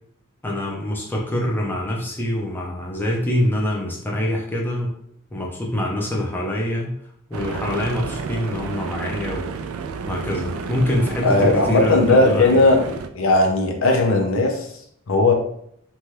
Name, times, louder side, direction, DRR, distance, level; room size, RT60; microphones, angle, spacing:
voice 1, 0.4-4.9 5.3-6.9 7.3-9.5 10.1-12.6, left 1 dB, 10° left, -2 dB, 0.5 m, -25 dB
sound 1, 7.3-13.1, right 4 dB, 90° right, 0.3 m, -31 dB
voice 2, 11.2-12.8 13.1-14.7 15.1-15.3, left 2 dB, 75° left, 2 dB, 0.5 m, -17 dB
2.7 x 2.2 x 3.2 m, 0.69 s
head